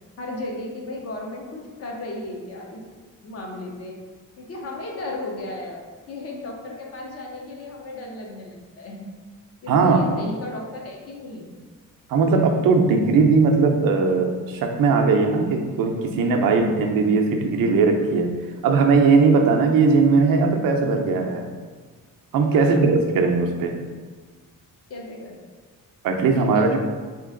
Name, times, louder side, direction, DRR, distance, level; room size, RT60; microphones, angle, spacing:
voice 1, 0.2-2.8 3.2-3.9 4.4-5.8 6.1-9.1 9.6-11.6 22.5-23.1 24.9-25.4 26.3-26.8, left 2 dB, 45° left, -1 dB, 0.7 m, -35 dB
voice 2, 9.7-10.1 12.1-18.3 18.6-21.5 22.3-23.8 26.0-26.8, right 4 dB, 75° right, 3 dB, 0.6 m, -19 dB
3.2 x 2.9 x 3.7 m, 1.5 s
cardioid pair, 175°, 34 cm